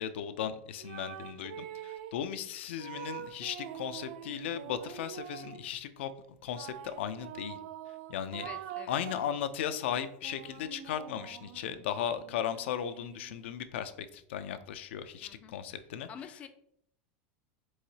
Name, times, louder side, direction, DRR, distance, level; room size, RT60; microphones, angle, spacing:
voice 1, 0.0-6.1 6.4-7.6 8.1-8.5 8.9-16.1, left 9 dB, 85° left, 11 dB, 0.5 m, -36 dB
sound 1, 0.8-2.3 2.8-5.7 6.6-9.4 10.0-13.6, right 10 dB, 65° right, 0.4 m, -45 dB
voice 2, 8.4-9.0 15.2-15.5 16.1-16.5, left 7 dB, 20° left, 9 dB, 0.3 m, -47 dB
4.7 x 3.8 x 2.7 m, 0.69 s
supercardioid pair, 160°, 6 cm